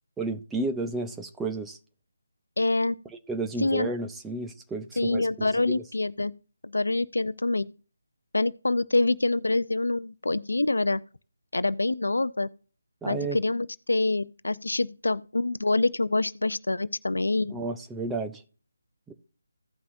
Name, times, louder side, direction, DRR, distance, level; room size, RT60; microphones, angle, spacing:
voice 1, 0.2-1.8 3.3-5.8 13.0-13.4 17.5-18.4 19.1-19.2, right 2 dB, 5° right, 0.6 m, -32 dB
voice 2, 2.6-3.0 3.6-3.9 5.0-6.3 6.6-7.7 8.3-11.0 11.5-12.5 13.1-17.6, left 2 dB, 75° left, 0.5 m, -26 dB
16.0 x 5.5 x 2.6 m
figure-of-eight pair, 155°, 0 cm